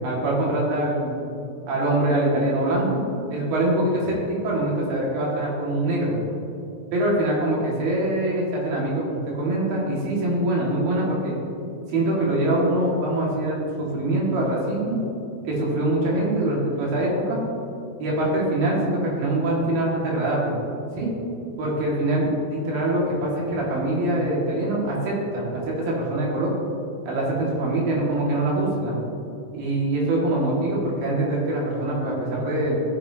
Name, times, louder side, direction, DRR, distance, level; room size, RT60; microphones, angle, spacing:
voice 1, 0.0-1.2 1.7-3.0 3.3-6.1 6.9-11.3 11.9-15.0 15.4-17.4 18.0-20.5 20.9-21.1 21.6-26.5 27.0-29.0 29.5-32.8, right 1 dB, 65° right, -4 dB, 3.4 m, -24 dB
14.5 x 7.6 x 2.7 m, 2.6 s
omnidirectional pair, 4.7 m